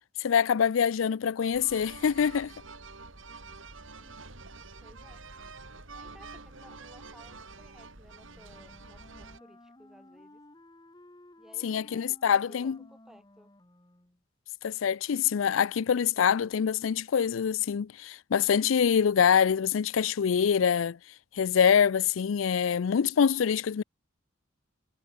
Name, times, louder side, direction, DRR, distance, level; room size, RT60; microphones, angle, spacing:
voice 1, 0.2-2.5 11.6-12.8 14.6-21.0 21.3-23.8, left 7 dB, 80° left, 0.4 m, -25 dB
sound 1, 1.5-9.4, right 3 dB, 80° right, 3.8 m, -47 dB
voice 2, 4.8-5.2 6.0-10.4 11.4-13.5, equal, 5° right, 2.2 m, -57 dB
Wind instrument woodwind instrument, 8.2-14.2, left 1 dB, 20° left, 1.5 m, -56 dB
head